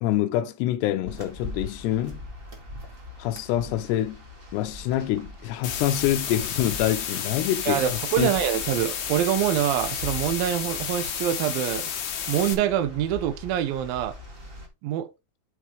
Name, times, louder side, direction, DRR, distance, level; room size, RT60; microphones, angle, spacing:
voice 1, 0.0-2.2 3.2-4.2 4.5-8.3, left 13 dB, 80° left, 2.9 m, -26 dB
sound 1, 1.0-14.7, left 2 dB, 25° right, 1.1 m, -42 dB
sound 2, 5.6-12.5, left 7 dB, 55° left, 2.4 m, -31 dB
voice 2, 7.7-11.9 12.3-14.1 14.8-15.1, right 11 dB, 75° right, 2.3 m, -25 dB
7.8 x 7.4 x 3.5 m
omnidirectional pair, 5.1 m